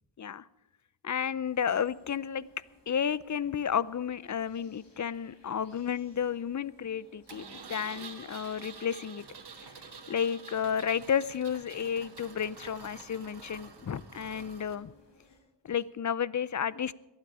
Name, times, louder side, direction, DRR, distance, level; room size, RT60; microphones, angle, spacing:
voice 1, 1.0-2.5 2.9-9.2 10.1-14.9 15.6-16.9, left 8 dB, 45° left, 19 dB, 0.6 m, -32 dB
sound 1, 1.4-15.4, left 2 dB, 90° left, 4.1 m, -62 dB
Engine, 7.3-14.8, right 5 dB, 70° right, 1.6 m, -48 dB
22.5 x 8.9 x 4.9 m, 0.98 s
cardioid pair, 50°, 42 cm